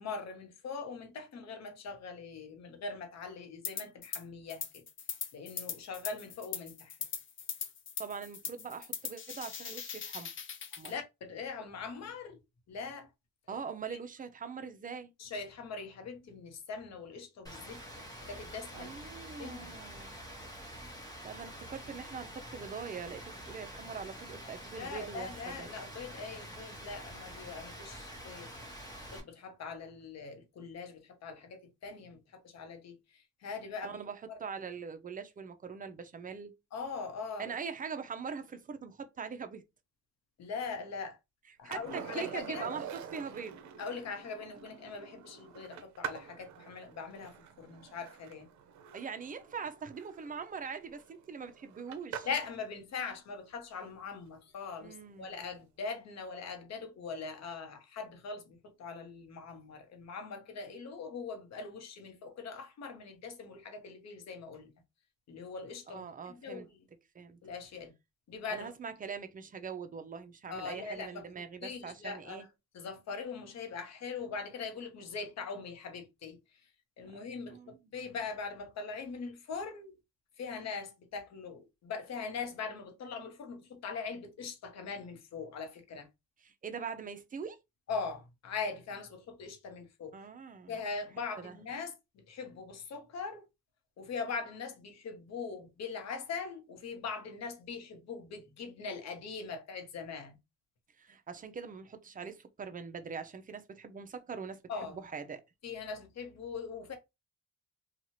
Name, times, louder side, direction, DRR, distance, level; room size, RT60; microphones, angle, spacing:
voice 1, 0.0-4.8 5.3-7.0 10.9-12.4 12.7-13.1 13.9-14.0 15.2-18.9 19.4-19.8 24.8-28.5 29.1-34.0 34.3-34.4 36.7-37.5 40.4-41.2 41.6-42.7 43.8-48.5 52.2-64.7 65.3-66.7 67.4-67.9 68.3-68.7 70.5-71.2 71.6-72.5 72.7-76.4 77.0-77.6 77.9-80.0 80.4-86.1 87.9-90.2 90.7-93.5 94.0-100.4 104.7-105.0 105.6-106.9, left 5 dB, 60° left, 1.0 m, -41 dB
sound 1, 3.6-4.2 4.5-10.9, left 7 dB, 40° left, 0.6 m, -40 dB
voice 2, 8.0-10.3 10.8-10.9 13.5-15.1 18.7-20.1 21.2-25.7 33.8-36.5 37.4-39.6 41.6-43.6 48.9-52.3 54.8-55.3 65.9-66.7 67.1-67.4 68.5-72.5 77.5-77.8 86.4-87.6 90.1-90.7 91.4-91.6 101.0-105.4, right 6 dB, 25° right, 0.5 m, -42 dB
Rain, 17.5-29.2, equal, 10° left, 1.1 m, -47 dB
Skateboard, 41.7-52.6 55.1-55.2, right 8 dB, 70° right, 0.6 m, -46 dB
2.8 x 2.4 x 2.9 m
cardioid pair, 90°, 30 cm